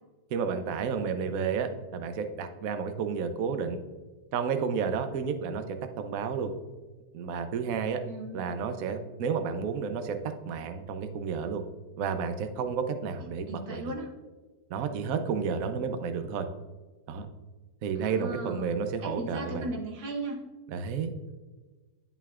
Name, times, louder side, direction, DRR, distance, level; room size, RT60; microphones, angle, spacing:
voice 1, 0.3-3.8 4.3-6.5 7.1-8.0 8.3-11.6 12.0-13.8 14.7-16.5 17.1-17.3 17.8-19.7 20.7-21.1, right 6 dB, 65° right, 7 dB, 0.9 m, -31 dB
voice 2, 8.1-8.4 13.5-14.1 18.0-18.7 19.0-20.4, right 2 dB, 80° right, 1 dB, 2.1 m, -37 dB
10.5 x 5.7 x 2.4 m, 1.3 s
omnidirectional pair, 2.0 m